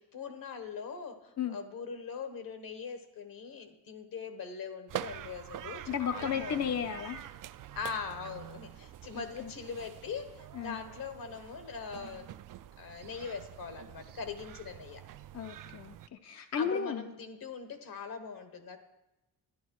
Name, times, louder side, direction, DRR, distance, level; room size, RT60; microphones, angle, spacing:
voice 1, 0.0-6.9 7.7-12.3 12.8-15.0 16.3-18.8, left 5 dB, 65° left, 8 dB, 1.3 m, -41 dB
sound 1, 4.9-16.1, right 12 dB, 60° right, 0.5 m, -46 dB
voice 2, 5.9-7.3 9.1-9.5 10.5-10.8 15.3-17.1, left 7 dB, 45° left, 7 dB, 0.6 m, -34 dB
11.5 x 10.5 x 4.7 m, 0.98 s
cardioid pair, 125°, 38 cm